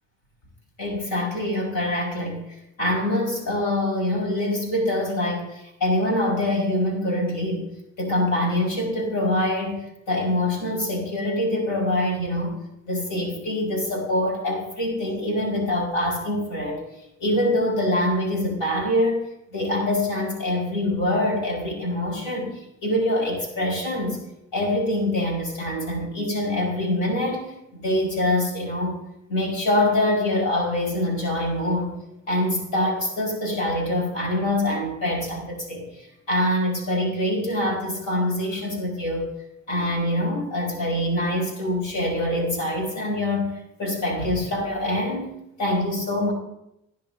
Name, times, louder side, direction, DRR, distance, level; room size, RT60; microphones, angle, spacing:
voice 1, 0.8-2.4 2.8-12.6 12.9-16.8 17.2-19.3 19.5-24.2 24.5-29.0 29.3-32.0 32.3-39.3 39.7-45.3 45.6-46.3, left 1 dB, 90° left, -1 dB, 5.1 m, -25 dB
20.5 x 10.0 x 2.7 m, 0.83 s
cardioid pair, 90°, 30 cm